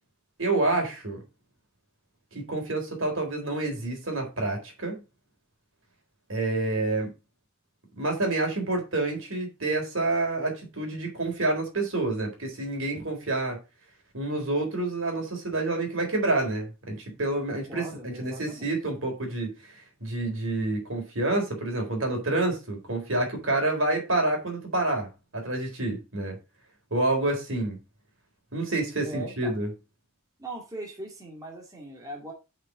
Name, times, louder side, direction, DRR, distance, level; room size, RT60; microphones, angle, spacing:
voice 1, 0.4-1.2 2.3-5.0 6.3-7.1 8.0-13.6 14.1-25.1 25.3-26.4 26.9-27.8 28.5-29.7, right 2 dB, 65° right, 3.8 m, -28 dB
voice 2, 17.5-18.8 29.0-29.6 30.4-32.3, right 2 dB, 15° right, 2.4 m, -40 dB
6.8 x 5.8 x 6.3 m
head